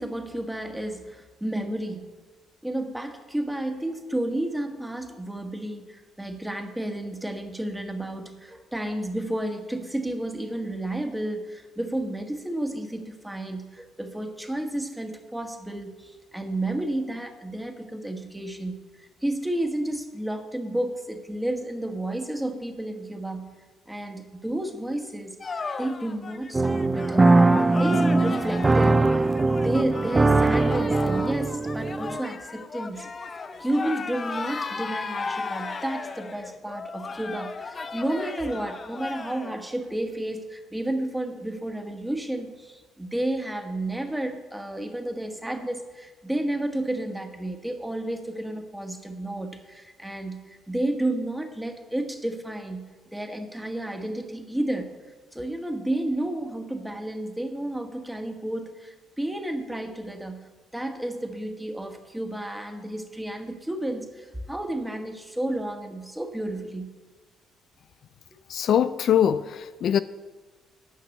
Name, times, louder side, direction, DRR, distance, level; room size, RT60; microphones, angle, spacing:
voice 1, 0.0-2.0 2.6-23.5 23.9-27.3 27.8-54.9 55.3-60.5 60.7-66.9, right 1 dB, 10° right, 5 dB, 1.5 m, -31 dB
sound 1, 25.4-39.5, left 4 dB, 40° left, 0.8 m, -35 dB
sound 2, 26.5-32.2, right 3 dB, 25° right, 0.4 m, -21 dB
voice 2, 68.5-70.0, left 9 dB, 60° left, 12 dB, 0.4 m, -22 dB
9.4 x 5.9 x 8.2 m, 1.3 s
hypercardioid pair, 60°, 0 cm